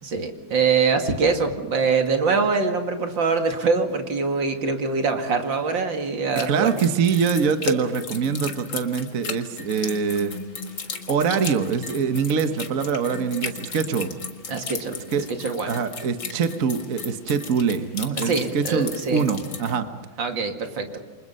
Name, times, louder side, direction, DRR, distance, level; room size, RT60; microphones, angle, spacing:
voice 1, 0.0-6.8 14.5-15.0 15.4-15.7 18.2-19.2 20.2-21.0, right 4 dB, 70° right, 5 dB, 2.9 m, -24 dB
sound 1, 6.4-19.8, left 4 dB, 60° left, 2.5 m, -35 dB
voice 2, 6.5-10.4 11.1-14.1 15.1-15.2 15.7-19.9, right 6 dB, 50° right, 8 dB, 1.4 m, -24 dB
29.0 x 25.0 x 5.5 m, 1.4 s
omnidirectional pair, 2.1 m